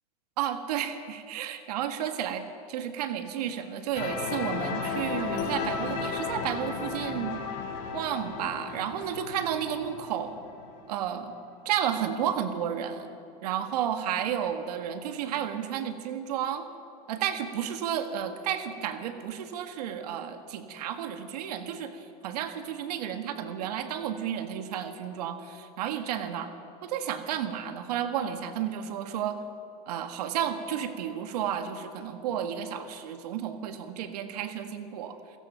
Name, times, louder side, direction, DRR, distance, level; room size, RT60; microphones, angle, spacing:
voice 1, 0.4-7.4 7.9-10.3 10.9-11.3 11.7-13.1 13.4-16.6 17.1-26.5 26.8-29.4 29.9-35.2, right 9 dB, 80° right, 7 dB, 1.8 m, -32 dB
sound 1, 3.9-10.7, left 5 dB, 50° left, 4.2 m, -34 dB
29.5 x 16.5 x 5.9 m, 2.9 s
supercardioid pair, 155°, 20 cm